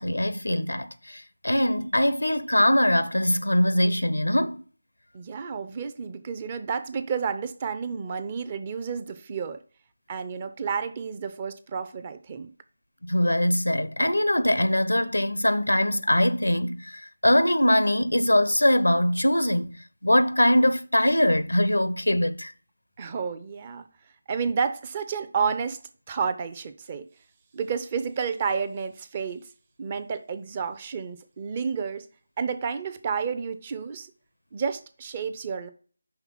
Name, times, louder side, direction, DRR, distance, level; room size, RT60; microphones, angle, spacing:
voice 1, 0.0-4.6 13.0-19.7 20.0-22.5, left 1 dB, 90° left, 0.6 m, -22 dB
voice 2, 5.1-9.6 10.1-12.5 23.0-23.9 24.3-25.8 26.1-27.1 27.5-29.5 29.8-32.1 32.4-34.1 34.5-35.7, right 6 dB, 25° right, 0.6 m, -30 dB
5.8 x 3.5 x 5.8 m
figure-of-eight pair, 160°, 0 cm